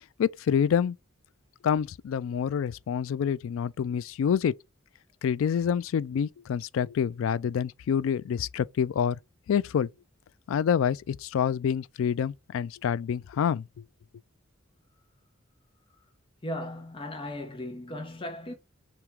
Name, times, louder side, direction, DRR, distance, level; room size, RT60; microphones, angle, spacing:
voice 1, 0.2-1.0 1.6-4.5 5.2-9.2 9.5-9.9 10.5-13.6, left 7 dB, 80° left, 0.3 m, -27 dB
voice 2, 16.4-18.6, left 1 dB, 25° left, 0.8 m, -37 dB
3.5 x 2.9 x 4.5 m
head